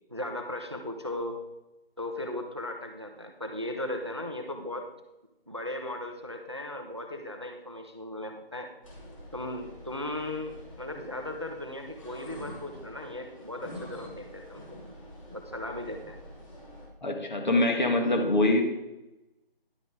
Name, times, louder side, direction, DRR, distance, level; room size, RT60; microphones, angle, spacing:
voice 1, 0.1-1.4 2.0-4.9 5.5-8.7 9.3-14.8 15.3-16.2, left 1 dB, 30° right, 5 dB, 0.5 m, -37 dB
sound 1, 8.8-16.9, left 1 dB, 35° left, 2.7 m, -46 dB
voice 2, 17.0-18.6, left 2 dB, 50° left, 3 dB, 1.9 m, -24 dB
10.5 x 5.7 x 5.0 m, 0.97 s
figure-of-eight pair, 165°, 30 cm